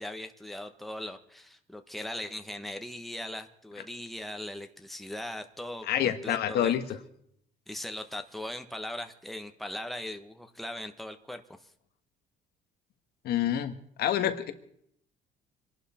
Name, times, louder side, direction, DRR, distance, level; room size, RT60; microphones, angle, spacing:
voice 1, 0.0-6.7 7.7-11.7, left 1 dB, ahead, 6 dB, 1.3 m, -39 dB
voice 2, 5.9-6.8 13.2-13.7 14.0-14.5, left 11 dB, 70° left, 10 dB, 1.5 m, -27 dB
25.5 x 11.5 x 4.4 m, 0.71 s
cardioid pair, 110°, 17 cm